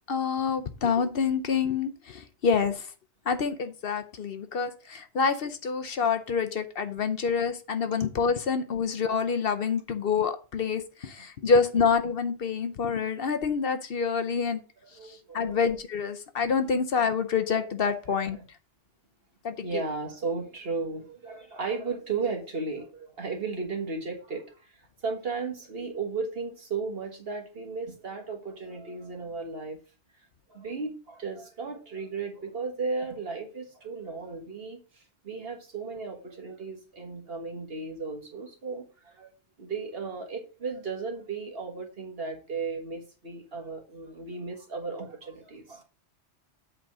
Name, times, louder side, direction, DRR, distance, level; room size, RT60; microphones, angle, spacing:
voice 1, 0.1-2.9 3.3-14.6 15.1-18.4 19.4-19.8, left 5 dB, 60° left, 0.9 m, -27 dB
voice 2, 14.9-15.7 17.5-17.7 18.1-18.4 19.6-29.8 30.5-39.3 39.6-45.8, right 4 dB, 60° right, 1.8 m, -35 dB
8.0 x 3.9 x 6.0 m
omnidirectional pair, 1.2 m